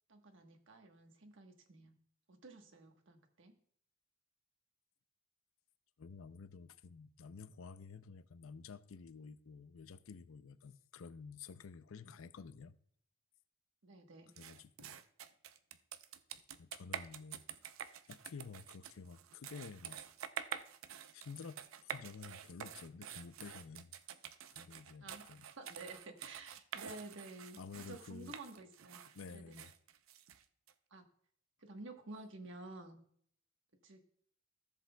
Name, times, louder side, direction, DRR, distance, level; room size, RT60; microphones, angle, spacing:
voice 1, 0.1-2.0 2.3-3.5 13.8-14.3 25.0-29.0 29.3-29.6 30.9-31.0 31.6-33.0 33.8-34.0, right 2 dB, 65° right, 1.3 m, -52 dB
voice 2, 6.0-12.8 14.4-15.0 16.6-17.4 18.1-20.0 21.1-23.9 24.5-25.5 26.9-27.0 27.6-28.3 29.1-29.7, left 5 dB, 80° left, 0.5 m, -51 dB
sound 1, 14.4-30.7, right 9 dB, 90° right, 0.5 m, -48 dB
14.5 x 7.5 x 2.3 m
head